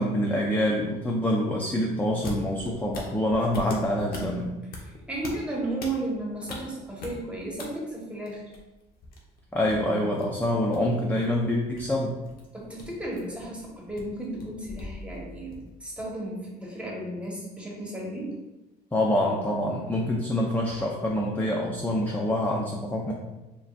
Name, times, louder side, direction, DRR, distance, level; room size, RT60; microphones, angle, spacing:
voice 1, 0.0-4.6 9.5-12.2 18.9-23.1, left 1 dB, 10° left, -1 dB, 0.5 m, -26 dB
sound 1, 2.1-7.6 7.9-16.2, left 3 dB, 60° left, 1.0 m, -42 dB
voice 2, 5.1-8.4 12.5-18.4, right 2 dB, 5° right, -4 dB, 1.4 m, -34 dB
5.1 x 3.4 x 2.6 m, 1.1 s
cardioid pair, 110°, 17 cm